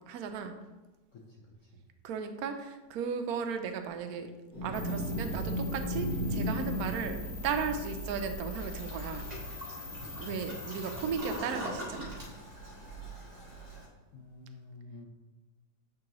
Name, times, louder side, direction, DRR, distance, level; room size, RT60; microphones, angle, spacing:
voice 1, 0.1-0.5 2.0-4.3 4.6-7.2 7.4-9.3 10.2-12.2, right 6 dB, 70° right, 7 dB, 0.9 m, -35 dB
voice 2, 1.1-1.8 10.0-10.3 14.1-15.1, left 2 dB, 55° left, -2 dB, 1.0 m, -50 dB
sound 1, 4.5-13.8, equal, 25° left, 2.3 m, -38 dB
sound 2, 4.7-11.4, left 1 dB, 85° left, 1.7 m, -42 dB
Toilet flush, 8.5-13.9, equal, 25° right, 1.2 m, -43 dB
8.6 x 3.8 x 3.0 m, 1.1 s
omnidirectional pair, 1.9 m